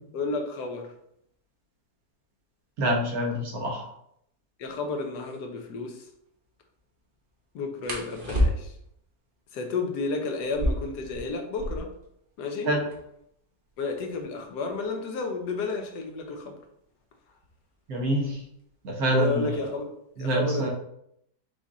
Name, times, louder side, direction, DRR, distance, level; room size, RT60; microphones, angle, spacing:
voice 1, 0.1-0.9 4.6-6.1 7.5-8.7 9.5-11.9 12.4-12.7 13.8-16.6 19.1-20.7, left 3 dB, 75° left, 1.2 m, -32 dB
voice 2, 2.8-3.9 12.7-12.8 17.9-18.4 18.8-19.5 20.2-20.7, right 1 dB, 60° right, 1.3 m, -26 dB
sound 1, 5.1-5.4 7.8-8.9 10.4-12.0 12.4-12.5 12.7-13.2 13.9-16.4 17.4-17.7 18.1-18.6 19.0-19.7, equal, 40° right, 0.9 m, -31 dB
4.9 x 2.5 x 4.0 m
omnidirectional pair, 1.8 m